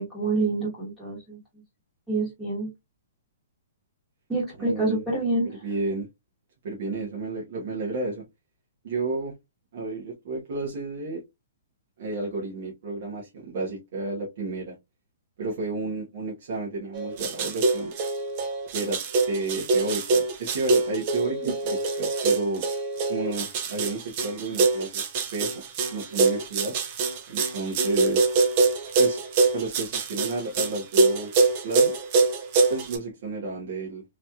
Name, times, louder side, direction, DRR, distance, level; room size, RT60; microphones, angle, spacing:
voice 1, 0.0-1.4 2.1-2.7 4.3-5.5 21.4-21.5, right 2 dB, ahead, 1.2 m, -27 dB
voice 2, 4.6-5.0 5.6-6.1 6.6-8.2 8.8-9.3 9.7-11.2 12.0-14.7 15.4-17.9 18.7-19.0 19.3-22.6 23.1-25.1 25.3-25.5 25.9-26.7 27.3-28.3 29.0-29.2 29.5-31.3 31.6-32.0 32.7-34.0, right 3 dB, 50° right, 1.1 m, -31 dB
sound 1, 16.9-33.0, right 3 dB, 30° right, 0.6 m, -24 dB
3.1 x 2.8 x 2.3 m
hypercardioid pair, 170°, 0 cm